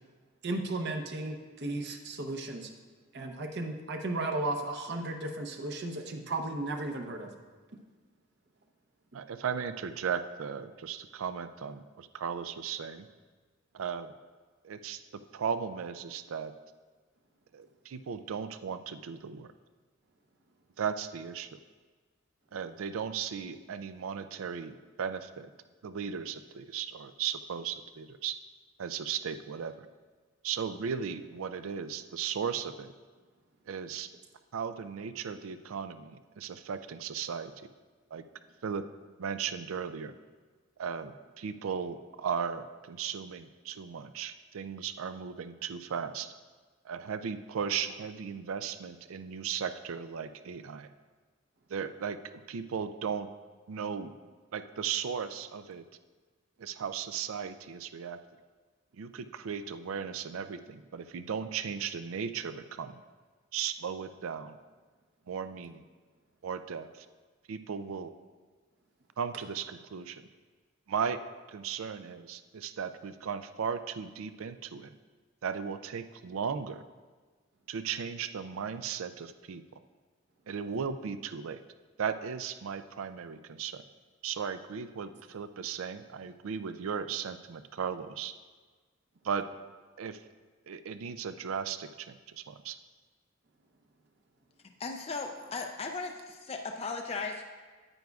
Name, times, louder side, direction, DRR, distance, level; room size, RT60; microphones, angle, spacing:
voice 1, 0.4-2.7 3.1-7.3, right 2 dB, 55° right, 4 dB, 0.7 m, -35 dB
voice 2, 9.1-13.1 13.7-14.1 14.6-15.0 15.3-16.5 17.5-19.5 20.8-21.6 22.5-25.5 25.8-28.4 28.8-29.9 30.4-32.9 33.7-34.1 34.5-37.5 38.1-38.2 38.6-38.8 39.2-40.1 40.8-46.3 46.8-50.9 51.7-52.2 52.5-53.3 53.7-54.1 54.5-55.8 56.6-58.2 59.0-63.0 63.5-64.6 65.3-65.8 66.4-67.1 67.5-68.1 69.2-70.2 70.9-71.2 71.5-74.9 75.4-76.8 77.7-79.6 80.5-81.6 82.0-83.8 84.2-88.3 89.2-89.4 90.0-90.2 90.7-92.8, right 7 dB, 90° right, 11 dB, 0.4 m, -36 dB
voice 3, 94.8-97.4, left 4 dB, 30° left, 4 dB, 0.4 m, -37 dB
9.3 x 9.1 x 2.3 m, 1.4 s
head